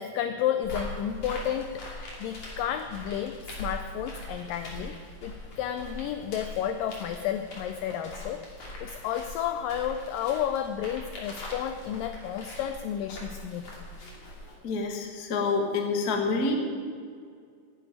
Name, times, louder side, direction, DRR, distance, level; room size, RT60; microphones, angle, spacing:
voice 1, 0.0-8.4 8.8-13.7, left 9 dB, 85° left, 8 dB, 1.9 m, -32 dB
sound 1, 0.6-14.6, left 1 dB, 40° left, 3.6 m, -42 dB
voice 2, 14.6-16.5, left 3 dB, 65° left, 2 dB, 0.9 m, -27 dB
11.0 x 9.2 x 9.5 m, 2.2 s
omnidirectional pair, 4.6 m